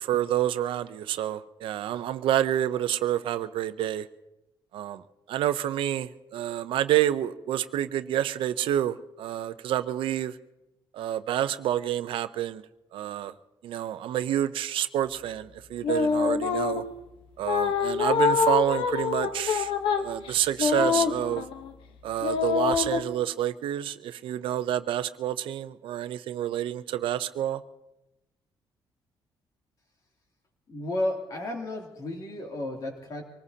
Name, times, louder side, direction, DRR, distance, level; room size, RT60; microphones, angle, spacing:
voice 1, 0.0-4.1 4.7-5.0 5.3-10.3 10.9-12.6 12.9-13.3 13.6-16.8 17.4-19.7 20.0-21.4 22.0-27.6, right 11 dB, 85° right, 12 dB, 0.6 m, -28 dB
sound 1, 15.8-16.9 17.4-21.7 22.2-23.0, left 6 dB, 85° left, 1.1 m, -25 dB
voice 2, 30.7-33.2, left 1 dB, 45° left, 1 dB, 2.8 m, -32 dB
25.0 x 19.5 x 2.8 m, 0.96 s
cardioid pair, 160°, 9 cm